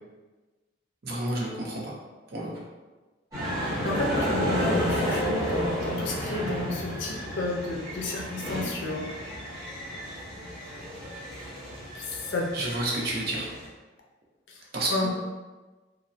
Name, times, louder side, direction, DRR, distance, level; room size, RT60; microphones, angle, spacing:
voice 1, 1.0-1.9 2.3-2.6 12.5-13.5 14.7-15.1, right 1 dB, 55° right, -3 dB, 0.7 m, -30 dB
sound 1, 3.3-13.7, equal, 20° right, 1.0 m, -32 dB
voice 2, 3.4-9.1 11.9-12.5 14.5-14.6 14.9-15.1, left 2 dB, 70° left, -1 dB, 0.5 m, -31 dB
3.1 x 2.0 x 2.6 m, 1.2 s
head